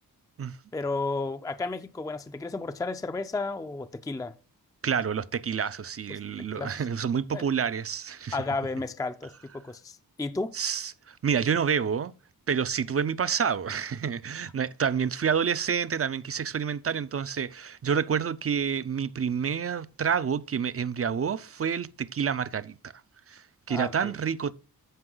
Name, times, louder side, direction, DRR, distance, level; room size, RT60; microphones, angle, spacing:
voice 1, 0.7-4.3 6.1-6.2 6.5-6.8 7.3-7.4 8.3-10.5 23.7-24.1, left 3 dB, 10° left, 0.5 m, -33 dB
voice 2, 4.8-8.4 10.5-12.1 12.5-22.8 23.3-24.5, right 7 dB, 40° right, 0.5 m, -28 dB
13.5 x 5.3 x 3.9 m
wide cardioid pair, 115°, 37 cm